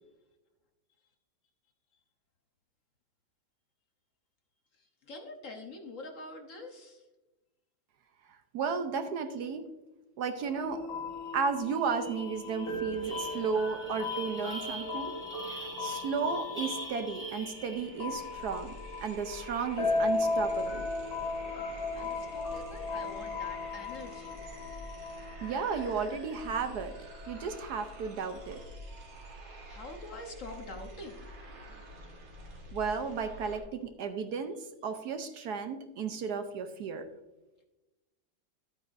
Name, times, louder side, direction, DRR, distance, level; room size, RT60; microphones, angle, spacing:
voice 1, 4.8-7.0 21.9-24.6 29.7-31.3, left 2 dB, 50° left, 3 dB, 1.2 m, -45 dB
voice 2, 8.5-9.7 10.2-10.9 11.3-15.2 15.4-18.7 19.0-20.9 25.4-27.0 27.3-28.6 32.7-37.1, right 5 dB, 70° right, 8 dB, 1.1 m, -34 dB
sound 1, 10.4-27.8, left 3 dB, 85° left, 2.2 m, -37 dB
sound 2, 11.3-11.4 11.7-18.1, equal, 5° right, 3.2 m, -43 dB
sound 3, 17.0-33.6, equal, 90° right, 2.5 m, -48 dB
11.5 x 8.6 x 2.6 m, 1.0 s
omnidirectional pair, 2.0 m